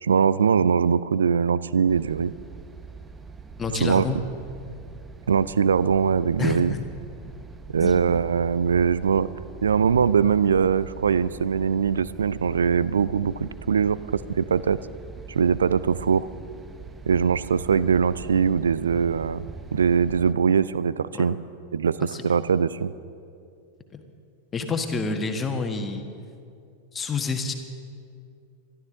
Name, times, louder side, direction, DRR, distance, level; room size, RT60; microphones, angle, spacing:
voice 1, 0.0-2.3 3.8-4.1 5.3-6.7 7.7-9.3 9.6-14.8 15.3-16.3 17.1-19.5 19.7-21.4 21.7-22.9, right 6 dB, 70° right, 18 dB, 0.4 m, -22 dB
sound 1, 1.9-20.3, right 5 dB, 20° right, 0.7 m, -42 dB
voice 2, 3.6-4.2 6.4-6.8 7.8-8.0 21.1-21.3 22.0-22.2 23.9-24.0 24.5-26.0 26.9-27.5, left 4 dB, 20° left, 5 dB, 1.5 m, -28 dB
23.5 x 13.5 x 3.8 m, 2.4 s
figure-of-eight pair, 90°, 0 cm